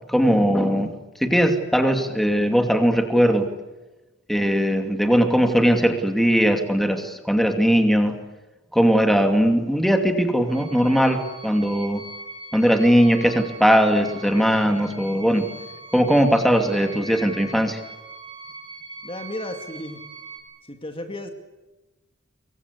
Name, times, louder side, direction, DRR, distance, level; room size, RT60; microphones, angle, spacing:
voice 1, 0.1-0.9 1.2-3.5 4.3-8.1 8.7-12.0 12.5-15.5 15.9-17.8, equal, ahead, 5 dB, 2.6 m, -19 dB
sound 1, 10.5-20.4, right 2 dB, 20° right, 6.4 m, -41 dB
voice 2, 19.0-20.0 20.7-21.3, left 1 dB, 25° left, 6 dB, 2.3 m, -33 dB
26.5 x 23.5 x 8.4 m, 1.1 s
head